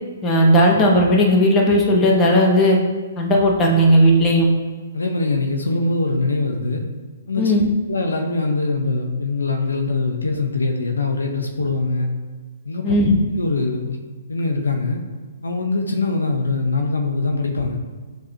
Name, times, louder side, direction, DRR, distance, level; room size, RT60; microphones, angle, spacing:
voice 1, 0.2-2.8 3.2-4.5 7.4-7.7 12.8-13.1, equal, 20° left, -2 dB, 0.8 m, -15 dB
voice 2, 4.9-6.9 7.3-7.6 7.9-12.1 12.6-12.9 13.3-14.0 14.3-15.0 15.4-17.8, left 3 dB, 80° left, 3 dB, 0.6 m, -22 dB
6.6 x 2.3 x 2.8 m, 1.4 s
figure-of-eight pair, 125°, 0 cm